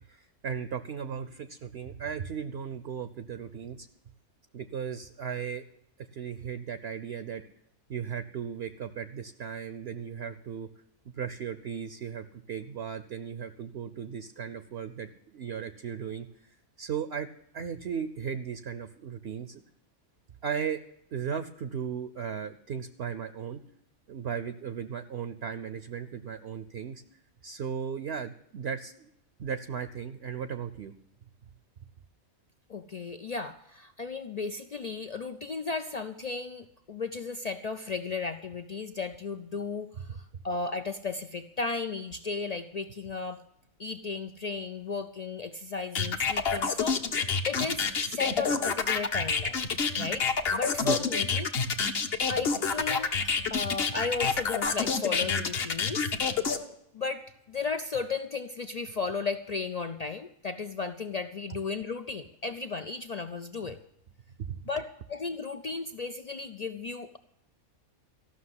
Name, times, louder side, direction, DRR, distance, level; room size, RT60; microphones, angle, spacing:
voice 1, 0.1-3.9 4.5-5.6 6.1-7.4 7.9-10.7 11.2-16.3 16.8-17.3 17.5-19.6 20.4-20.8 21.1-23.6 24.1-27.0 27.4-29.1 29.4-30.9 40.1-40.2 50.8-51.0 64.4-64.7, right 7 dB, 55° right, 12 dB, 0.8 m, -36 dB
voice 2, 32.7-43.4 43.8-49.6 50.0-50.3 50.5-51.5 52.3-53.1 53.5-56.1 56.9-63.8 64.7-67.2, left 4 dB, 75° left, 9 dB, 0.3 m, -35 dB
sound 1, 45.9-56.6, left 5 dB, 50° left, 1.1 m, -28 dB
14.5 x 6.3 x 9.6 m, 0.78 s
omnidirectional pair, 1.5 m